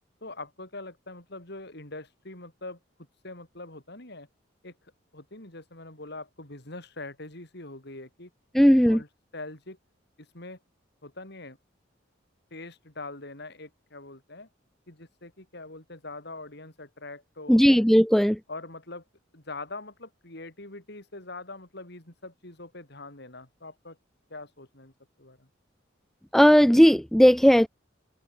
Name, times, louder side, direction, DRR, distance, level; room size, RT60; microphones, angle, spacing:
voice 1, 0.2-2.8 3.2-4.3 4.6-4.8 5.1-8.3 8.8-9.1 9.3-9.8 10.2-10.6 11.0-11.6 12.5-14.5 14.9-17.9 18.5-19.0 19.3-24.0 24.3-24.9 25.2-25.5, left 2 dB, 60° left, 5.7 m, -43 dB
voice 2, 8.5-9.0 17.5-18.4 26.3-27.7, equal, ahead, 0.4 m, -17 dB
head